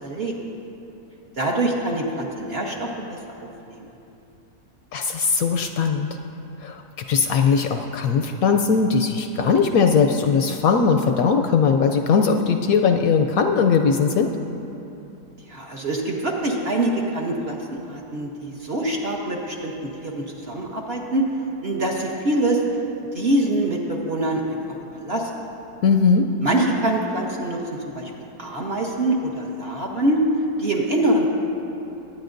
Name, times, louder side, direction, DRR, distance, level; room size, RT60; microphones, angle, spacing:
voice 1, 0.0-0.5 1.4-3.2 3.7-3.9 15.5-21.3 21.6-22.6 23.1-24.4 24.9-25.3 26.4-28.1 28.4-30.2 30.6-31.3, right 1 dB, 45° right, -1 dB, 1.0 m, -24 dB
voice 2, 4.9-6.1 6.6-6.8 7.1-14.3 25.8-26.3, left 5 dB, 70° left, 5 dB, 0.9 m, -19 dB
21.5 x 9.2 x 2.6 m, 2.9 s
omnidirectional pair, 1.8 m